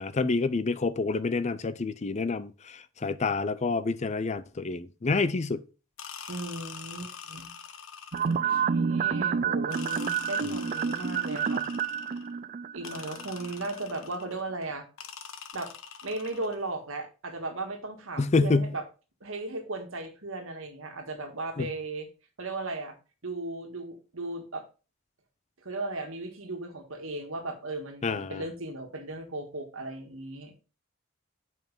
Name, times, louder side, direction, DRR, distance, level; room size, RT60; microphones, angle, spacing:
voice 1, 0.0-5.6 18.2-18.7 21.6-21.7 28.0-28.4, left 3 dB, 30° left, 0.4 m, -28 dB
sound 1, 6.0-8.5 9.7-12.3 12.8-14.4 15.0-16.6, left 7 dB, 70° left, 0.9 m, -44 dB
voice 2, 6.3-7.5 8.3-11.7 12.7-14.9 15.5-15.7 16.0-18.8 19.2-22.1 22.4-22.9 23.2-24.7 25.6-30.6, right 2 dB, 65° right, 1.8 m, -36 dB
sound 2, 8.1-13.5 13.8-13.9, right 6 dB, 40° right, 0.3 m, -29 dB
7.2 x 5.5 x 5.4 m
head